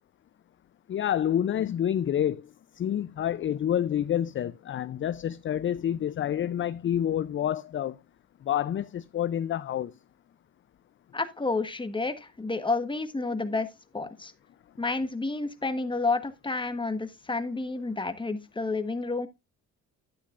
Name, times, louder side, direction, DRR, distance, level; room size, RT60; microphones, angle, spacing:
voice 1, 0.9-2.5 2.7-8.0 8.4-9.9, left 10 dB, 40° left, 0.5 m, -28 dB
voice 2, 11.1-13.7 13.9-14.3 14.8-19.3, left 3 dB, 15° left, 1.3 m, -30 dB
11.5 x 9.6 x 2.5 m
cardioid pair, 90°, 30 cm